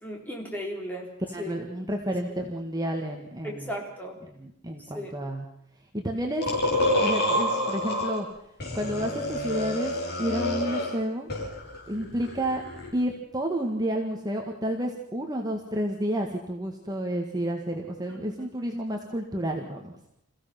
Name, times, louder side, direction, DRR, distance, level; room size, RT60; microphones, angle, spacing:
voice 1, 0.0-1.1 1.4-1.5 3.4-4.2 4.9-5.1 18.1-18.5, equal, 10° left, -1 dB, 3.9 m, -36 dB
voice 2, 1.3-3.7 4.4-5.5 5.9-6.5 7.0-8.3 8.7-9.9 10.2-11.3 11.9-12.6 12.9-19.9, right 1 dB, 20° right, 1 dB, 1.8 m, -30 dB
sound 1, 6.4-8.2 8.6-11.0 11.3-12.9, left 1 dB, 50° left, 6.1 m, -28 dB
27.5 x 16.0 x 6.0 m, 0.75 s
head